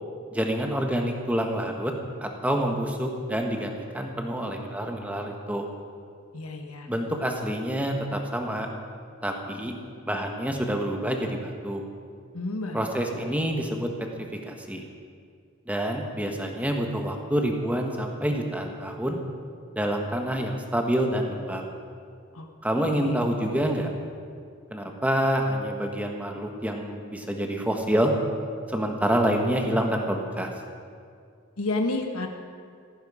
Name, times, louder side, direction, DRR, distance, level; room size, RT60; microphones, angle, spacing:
voice 1, 0.3-1.9 2.2-5.7 6.9-8.7 9.2-9.7 10.1-11.8 12.7-13.9 14.4-14.8 15.7-19.2 19.7-21.6 22.6-23.9 24.7-28.1 28.7-30.5, right 1 dB, 5° right, 2 dB, 1.3 m, -27 dB
voice 2, 6.3-6.9 12.3-12.8 22.3-22.4 22.8-23.2 31.6-32.3, left 2 dB, 90° left, 3 dB, 1.4 m, -30 dB
15.5 x 15.0 x 4.9 m, 2.3 s
head